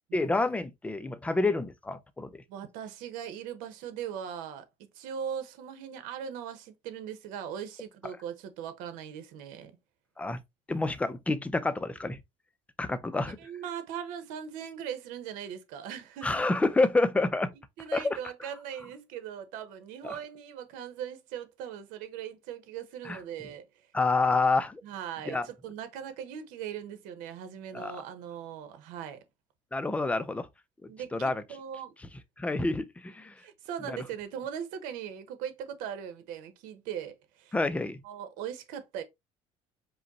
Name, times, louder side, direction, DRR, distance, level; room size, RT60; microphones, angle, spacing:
voice 1, 0.1-2.4 10.2-10.4 10.7-12.2 12.8-13.4 16.2-17.5 17.9-18.2 20.0-20.2 23.1-23.2 23.9-24.8 25.3-25.5 27.7-27.9 29.7-30.5 31.1-31.4 32.4-33.3 33.9-34.0 37.5-38.0, left 3 dB, 10° left, 0.5 m, -28 dB
voice 2, 2.5-4.7 4.9-9.7 13.4-16.5 17.8-23.9 24.8-29.2 30.9-31.9 33.4-37.5 38.0-39.0, right 8 dB, 85° right, 1.0 m, -39 dB
5.0 x 2.2 x 4.1 m
cardioid pair, 125°, 13 cm